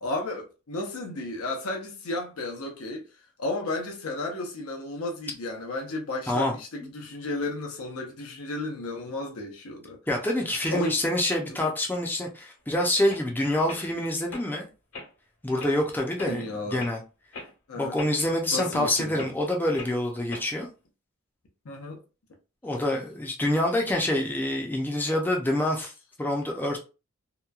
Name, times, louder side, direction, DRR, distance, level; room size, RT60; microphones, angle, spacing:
voice 1, 0.0-3.0 3.4-10.0 10.7-11.0 11.5-11.7 16.3-16.9 17.7-18.0 18.5-19.3 21.6-22.0, left 2 dB, 85° left, 0.7 m, -33 dB
voice 2, 10.1-14.7 15.4-17.0 17.8-20.7 22.6-25.9 26.2-26.8, left 1 dB, 10° left, 0.4 m, -26 dB
sound 1, 12.6-12.7 13.1-13.2 13.6-13.8 14.3-14.5 14.9-15.1 15.6-15.7 16.2-16.4 16.8-17.0 17.3-17.5 18.0-18.1 18.5-18.7 19.1-19.3 19.7-19.9 20.3-20.5, left 3 dB, 70° left, 1.2 m, -40 dB
2.9 x 2.2 x 2.3 m
head